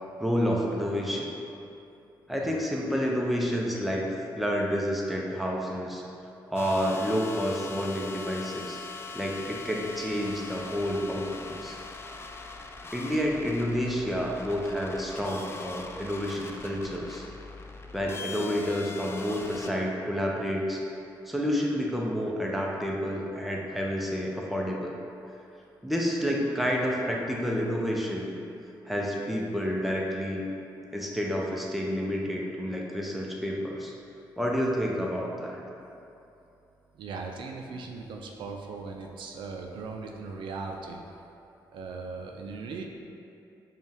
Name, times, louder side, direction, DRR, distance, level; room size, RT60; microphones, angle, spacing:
voice 1, 0.2-1.3 2.3-4.1 4.3-6.0 6.5-8.8 9.1-11.8 12.9-17.2 17.9-20.8 21.3-24.9 25.8-28.3 28.9-30.4 30.9-33.9 34.4-35.6, equal, ahead, -2 dB, 0.7 m, -29 dB
sound 1, 6.6-19.7, left 4 dB, 30° left, 0.3 m, -42 dB
voice 2, 36.9-41.0 41.7-42.8, right 4 dB, 75° right, 2 dB, 0.4 m, -38 dB
5.2 x 2.3 x 3.4 m, 2.8 s
cardioid pair, 70°, 8 cm